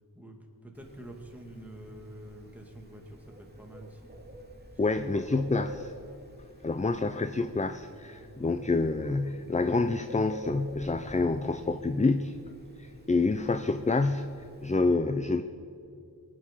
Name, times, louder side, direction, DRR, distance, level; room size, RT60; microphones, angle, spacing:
voice 1, 0.1-4.1 4.9-5.6 6.8-7.5 8.4-8.6, right 1 dB, 5° right, 0 dB, 2.6 m, -48 dB
Bird, 0.7-14.7, equal, 25° right, 2.6 m, -48 dB
voice 2, 4.8-5.9 6.6-12.4 12.8-15.4, left 3 dB, 20° left, 9 dB, 0.5 m, -28 dB
23.0 x 9.1 x 5.7 m, 2.5 s
wide cardioid pair, 50°, 39 cm